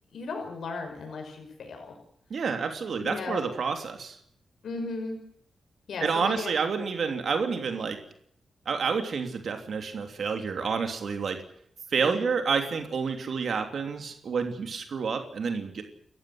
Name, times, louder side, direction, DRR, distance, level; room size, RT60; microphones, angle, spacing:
voice 1, 0.1-2.0 3.0-3.5 4.6-5.2 5.9-6.6 12.0-12.2, left 3 dB, 80° left, 3 dB, 5.8 m, -36 dB
voice 2, 2.3-4.2 6.0-8.0 8.6-11.4 11.9-15.8, right 5 dB, 65° right, 5 dB, 3.1 m, -29 dB
30.0 x 15.0 x 7.9 m, 0.67 s
wide cardioid pair, 135°, 0 cm